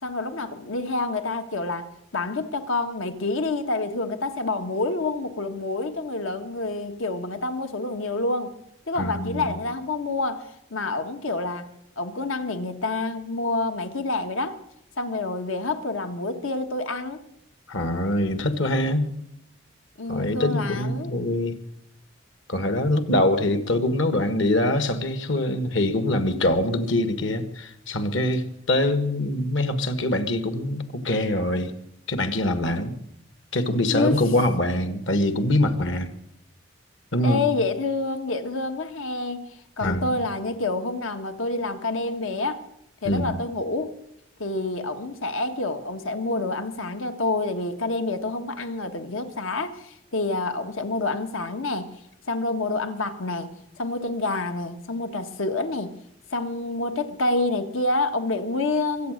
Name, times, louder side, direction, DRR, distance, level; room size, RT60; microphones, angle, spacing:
voice 1, 0.0-8.5 8.9-11.7 12.0-14.6 15.0-17.2 20.0-21.1 33.9-34.2 37.2-39.4 39.8-42.6 43.0-43.9 44.4-51.9 52.3-53.5 53.8-55.9 56.3-59.1, left 2 dB, 85° left, 7 dB, 1.5 m, -28 dB
voice 2, 9.0-9.5 17.7-19.1 20.1-21.6 22.5-31.7 32.1-32.9 33.5-36.1 37.1-37.5 39.8-40.1 43.0-43.3, left 1 dB, 70° left, 9 dB, 1.7 m, -24 dB
23.5 x 8.5 x 6.5 m, 0.76 s
head